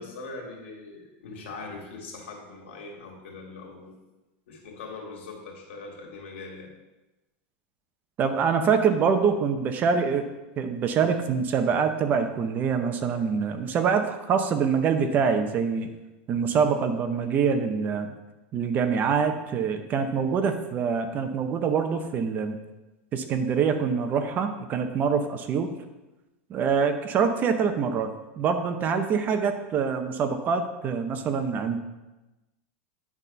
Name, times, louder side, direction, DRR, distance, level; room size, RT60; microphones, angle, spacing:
voice 1, 0.0-3.9 4.5-6.7, left 3 dB, 80° left, 0 dB, 2.4 m, -41 dB
voice 2, 8.2-10.3 10.6-15.9 16.3-18.1 18.5-22.6 23.1-25.7 26.5-31.8, right 6 dB, 30° right, 8 dB, 0.6 m, -25 dB
9.6 x 4.0 x 5.5 m, 1.1 s
supercardioid pair, 150°, 6 cm